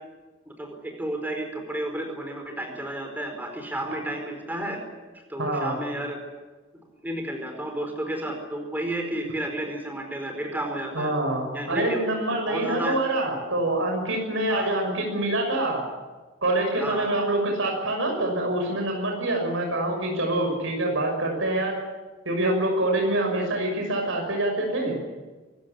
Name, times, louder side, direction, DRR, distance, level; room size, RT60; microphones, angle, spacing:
voice 1, 0.4-4.8 5.1-6.2 7.0-11.1 11.5-12.0 12.5-13.0 14.5-14.8 16.8-17.2, right 1 dB, 10° right, 3 dB, 4.7 m, -32 dB
voice 2, 5.4-5.7 10.9-15.8 16.4-21.7 22.2-24.9, right 1 dB, 75° right, 2 dB, 6.5 m, -25 dB
25.0 x 16.5 x 10.0 m, 1.2 s
head